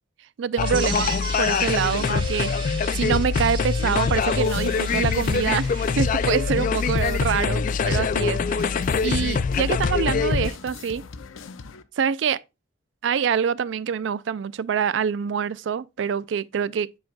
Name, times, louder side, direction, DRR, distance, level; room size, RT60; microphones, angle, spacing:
voice 1, 0.4-2.5 2.9-11.0 12.0-12.4 13.0-16.9, right 7 dB, 70° right, 0.3 m, -25 dB
sound 1, 0.6-10.5, left 5 dB, 40° left, 0.3 m, -24 dB
sound 2, 0.6-7.0, right 3 dB, 25° right, 1.7 m, -36 dB
sound 3, 4.4-11.8, left 4 dB, 90° left, 0.6 m, -41 dB
7.7 x 7.2 x 2.2 m
head